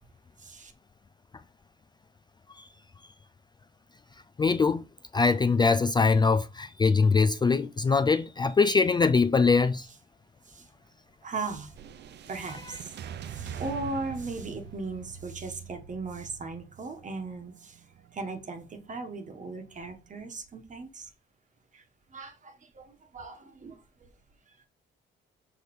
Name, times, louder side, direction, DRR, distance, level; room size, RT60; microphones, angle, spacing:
voice 1, 0.4-0.7 10.5-10.7 11.2-11.7 12.3-13.0 13.3-17.8 18.1-21.1 21.7-21.8 22.1-24.1 24.5-24.7, right 3 dB, 40° right, 1.3 m, -38 dB
voice 2, 4.4-4.8 5.1-9.9, left 4 dB, 20° left, 0.3 m, -23 dB
sound 1, 11.7-20.1, right 8 dB, 60° right, 0.5 m, -44 dB
6.1 x 5.2 x 3.2 m
cardioid pair, 90°, 20 cm